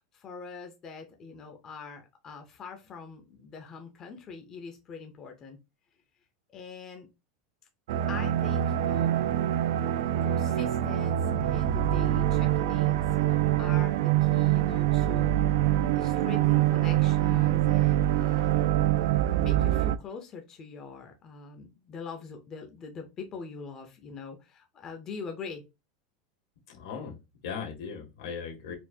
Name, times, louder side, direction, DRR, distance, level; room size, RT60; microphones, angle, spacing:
voice 1, 0.1-5.6 6.5-7.1 8.1-9.3 10.2-15.4 15.9-18.5 19.4-25.6, left 5 dB, 20° left, 0.5 m, -43 dB
sound 1, 7.9-20.0, right 13 dB, 75° right, 0.3 m, -25 dB
voice 2, 26.7-28.7, left 6 dB, 80° left, 1.7 m, -38 dB
4.3 x 2.5 x 2.7 m
supercardioid pair, 170°, 2 cm